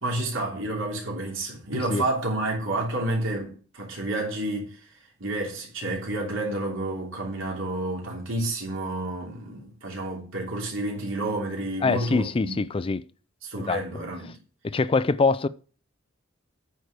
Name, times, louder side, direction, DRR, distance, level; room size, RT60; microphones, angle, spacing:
voice 1, 0.0-4.9 5.2-12.6 13.4-14.3, right 2 dB, 85° right, 3.1 m, -30 dB
voice 2, 1.7-2.0 11.8-13.0 13.6-13.8 14.6-15.5, left 3 dB, 30° left, 0.4 m, -24 dB
9.0 x 4.7 x 6.6 m
head